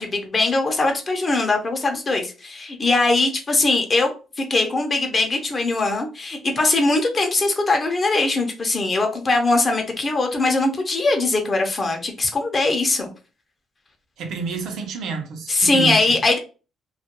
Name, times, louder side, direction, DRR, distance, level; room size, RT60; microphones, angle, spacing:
voice 1, 0.0-4.1 4.4-13.1 15.5-16.4, left 2 dB, 35° left, 0.6 m, -21 dB
voice 2, 14.2-16.2, right 4 dB, 75° right, 0.6 m, -29 dB
2.3 x 2.2 x 2.9 m
cardioid pair, 100°, 0 cm